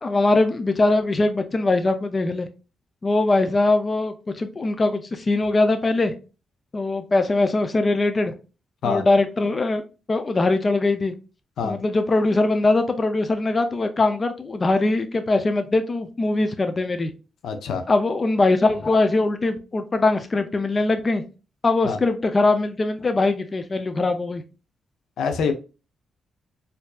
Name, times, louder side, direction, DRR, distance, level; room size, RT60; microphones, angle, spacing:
voice 1, 0.0-2.5 3.0-6.1 6.7-8.3 8.8-9.8 10.1-11.1 11.6-17.1 17.9-21.2 21.6-24.4, left 2 dB, 30° left, 0.4 m, -21 dB
voice 2, 17.4-17.8 21.8-22.0 25.2-25.5, left 5 dB, 80° left, 0.5 m, -25 dB
4.4 x 2.6 x 2.3 m
cardioid pair, 90°, 0 cm